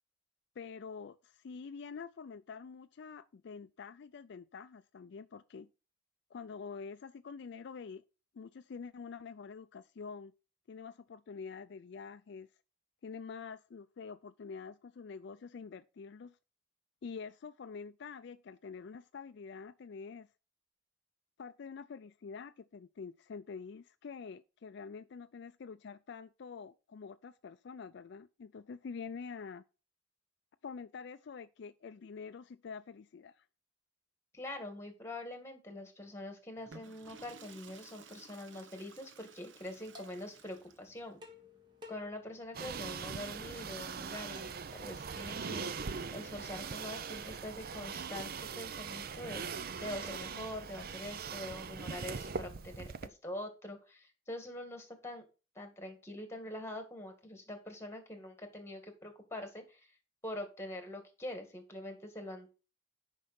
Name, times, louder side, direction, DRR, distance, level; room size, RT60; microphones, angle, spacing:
voice 1, 0.6-5.7 6.3-8.0 8.3-10.3 10.7-12.5 13.0-16.4 17.0-20.3 21.4-29.6 30.6-33.4, left 5 dB, 60° left, 0.4 m, -46 dB
voice 2, 34.3-41.2 41.9-45.7 46.1-55.2 55.6-59.9 60.2-62.5, left 1 dB, 15° left, 2.0 m, -44 dB
Water / Toilet flush, 36.6-41.1, right 4 dB, 75° right, 0.9 m, -56 dB
sound 1, 39.7-46.4, left 3 dB, 25° right, 1.5 m, -58 dB
sound 2, 42.5-53.1, right 5 dB, 50° right, 0.5 m, -41 dB
10.0 x 5.4 x 4.2 m
head